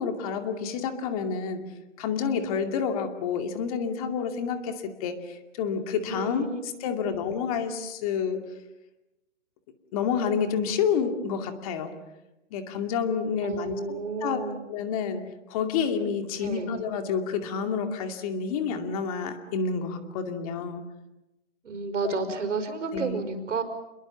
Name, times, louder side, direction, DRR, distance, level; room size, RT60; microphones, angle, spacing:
voice 1, 0.0-1.6 2.0-8.4 9.9-11.9 12.5-14.4 14.7-15.2 15.5-20.8 22.0-22.4 22.9-23.2, left 6 dB, 30° left, 6 dB, 2.4 m, -29 dB
voice 2, 6.1-7.2 13.4-14.6 16.4-16.7 21.6-23.6, right 4 dB, 75° right, 7 dB, 5.6 m, -32 dB
29.0 x 21.5 x 7.2 m, 0.99 s
hypercardioid pair, 155°, 37 cm